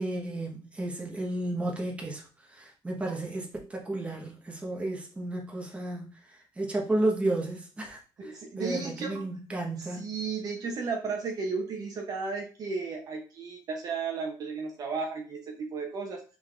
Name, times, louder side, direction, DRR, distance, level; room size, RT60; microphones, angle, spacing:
voice 1, 0.0-6.1 6.6-10.1, right 2 dB, 15° right, -1 dB, 1.2 m, -32 dB
voice 2, 8.2-9.2 9.8-16.2, right 4 dB, 45° right, 2 dB, 0.8 m, -34 dB
5.1 x 3.6 x 2.5 m, 0.36 s
cardioid pair, 120°, 9 cm